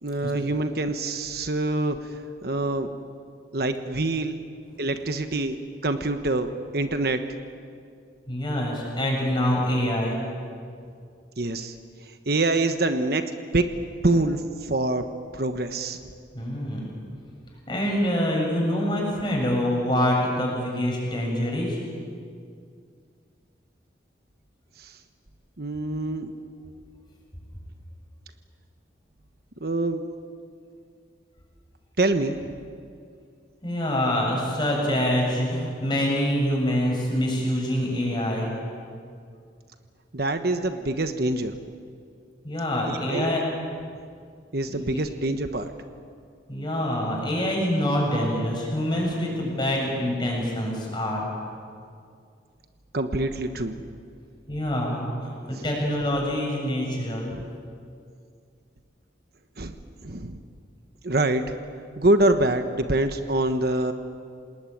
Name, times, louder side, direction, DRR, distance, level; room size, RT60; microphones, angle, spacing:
voice 1, 0.0-2.9 3.5-4.4 4.8-7.2 11.4-11.7 12.3-13.7 14.0-15.0 15.3-16.0 24.8-25.0 25.6-26.3 29.6-30.1 32.0-32.5 40.1-41.5 42.9-43.4 44.5-45.7 49.0-49.1 52.9-53.8 57.3-57.5 59.6-59.8 60.0-60.4 61.0-61.4 62.0-63.9, right 2 dB, 55° right, 7 dB, 1.2 m, -25 dB
voice 2, 8.3-10.2 16.3-16.9 17.7-21.8 33.6-38.5 42.4-43.4 44.7-44.8 46.5-51.3 54.5-57.3, left 1 dB, 25° left, -1 dB, 7.5 m, -25 dB
28.0 x 20.0 x 9.3 m, 2.3 s
head